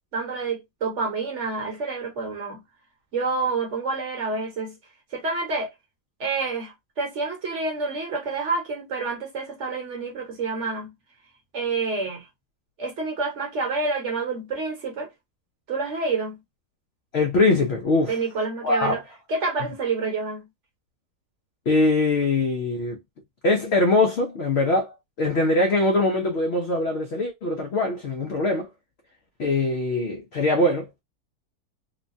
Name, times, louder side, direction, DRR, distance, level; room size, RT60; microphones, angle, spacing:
voice 1, 0.1-2.6 3.1-4.7 5.1-5.7 6.2-10.9 11.5-12.3 12.8-15.1 15.7-16.4 18.1-19.0 19.3-20.4, right 3 dB, 55° right, 1.1 m, -28 dB
voice 2, 17.1-18.2 18.6-19.0 21.7-23.0 23.4-28.7 29.4-31.0, left 2 dB, 65° left, 0.6 m, -22 dB
3.1 x 2.2 x 2.6 m
omnidirectional pair, 1.7 m